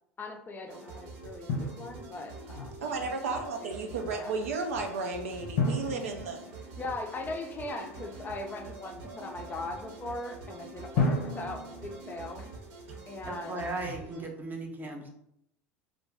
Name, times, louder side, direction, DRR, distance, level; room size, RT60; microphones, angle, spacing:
voice 1, 0.2-2.9 3.6-4.4 6.8-12.5 13.1-13.6, left 2 dB, 25° left, 4 dB, 0.4 m, -40 dB
sound 1, 0.7-14.2, right 2 dB, 65° right, 0.8 m, -46 dB
Drum, 1.5-2.6 5.6-7.4 10.9-12.9, left 3 dB, 70° left, 0.6 m, -33 dB
voice 2, 2.8-6.4, right 3 dB, 85° right, 4 dB, 0.4 m, -33 dB
voice 3, 13.2-15.1, right 2 dB, 25° right, 2 dB, 0.7 m, -37 dB
2.5 x 2.1 x 3.3 m, 0.76 s
hypercardioid pair, 80°, 7 cm